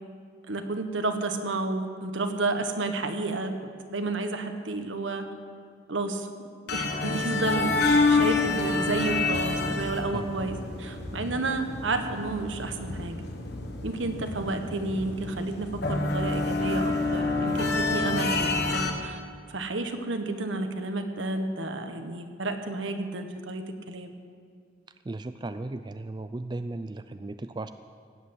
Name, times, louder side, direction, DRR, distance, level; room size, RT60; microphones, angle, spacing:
voice 1, 0.5-3.5 3.9-5.2 5.9-6.3 6.7-13.2 13.8-19.2 19.5-24.1, right 2 dB, 80° right, 6 dB, 1.3 m, -31 dB
sound 1, 6.7-18.9, left 3 dB, 55° left, 1.4 m, -28 dB
voice 2, 25.1-27.7, right 2 dB, 25° right, 10 dB, 0.3 m, -36 dB
18.5 x 8.3 x 8.0 m, 2.1 s
head